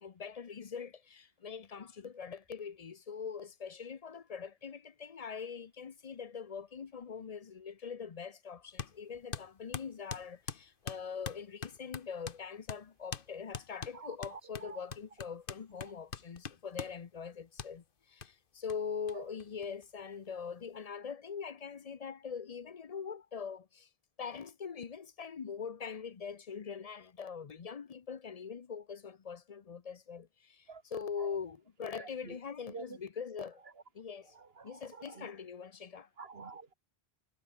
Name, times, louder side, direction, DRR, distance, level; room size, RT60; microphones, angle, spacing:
voice 1, 0.0-23.9 24.2-33.6 33.9-34.3 34.6-36.1, left 6 dB, 40° left, 0.7 m, -43 dB
sound 1, 8.8-8.9 9.3-12.4 12.7-12.8 13.1-13.3 13.5-17.0 17.6-17.7 18.2-18.3 18.7-18.8 19.1-19.2 19.4-20.1, left 6 dB, 55° left, 1.3 m, -42 dB
voice 2, 13.9-14.8 15.8-15.9 19.1-19.2 30.7-30.8 31.2-31.4 32.0-32.4 32.7-33.0 33.6-33.7 34.3-35.3 36.2-36.7, right 4 dB, 70° right, 1.9 m, -49 dB
omnidirectional pair, 1.1 m